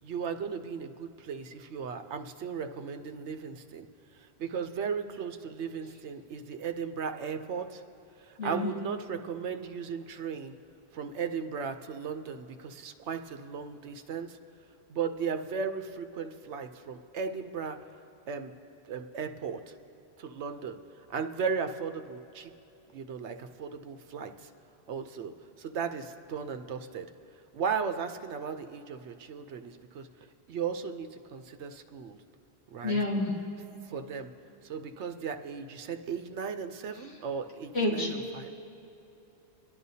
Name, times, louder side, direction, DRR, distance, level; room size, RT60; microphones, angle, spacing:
voice 1, 0.0-3.9 4.1-7.8 8.2-10.5 10.9-14.4 14.9-17.8 18.3-18.5 18.9-19.6 20.2-20.8 21.1-22.5 22.9-24.5 24.9-27.1 27.5-30.1 30.5-32.2 32.7-33.0 33.8-34.3 34.6-38.5, right 6 dB, 80° right, 7 dB, 1.0 m, -36 dB
voice 2, 8.4-8.7 32.8-33.3 37.7-38.1, left 2 dB, 70° left, -4 dB, 2.2 m, -28 dB
24.0 x 11.0 x 2.8 m, 3.0 s
omnidirectional pair, 1.1 m